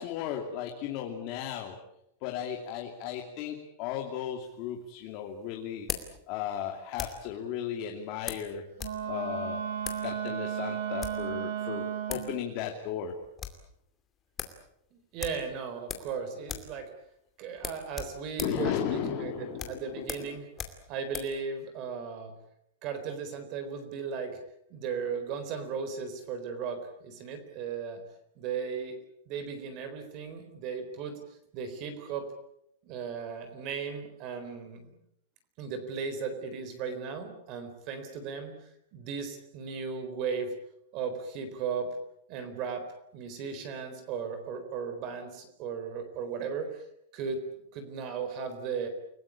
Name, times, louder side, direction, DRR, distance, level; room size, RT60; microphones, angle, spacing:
voice 1, 0.0-1.8 2.2-5.9 6.3-8.6 9.0-9.6 10.0-13.2 18.4-20.3, left 9 dB, 35° left, 3 dB, 2.7 m, -35 dB
sound 1, 4.4-7.3 8.3-9.0 9.3-9.4 9.8-10.1 10.8-11.3 11.8-11.9 12.1-12.3 12.6-12.7 13.0-13.6 14.0-14.1 14.4-14.6 15.2-16.2 16.4-16.8 17.0-17.2 17.6-21.4, left 7 dB, 15° left, 2.5 m, -40 dB
Wind instrument woodwind instrument, 8.8-12.4, right 9 dB, 75° right, 5.7 m, -34 dB
voice 2, 14.9-16.9 17.4-20.5 20.9-22.3 22.8-24.4 24.7-28.0 28.4-29.0 29.3-31.2 31.5-32.3 32.8-34.9 35.6-40.5 40.9-42.0 42.3-42.9 43.1-46.8 47.1-47.5 47.7-48.9, right 6 dB, 30° right, 9 dB, 4.0 m, -36 dB
29.5 x 19.0 x 8.6 m, 0.78 s
supercardioid pair, 175°, 0 cm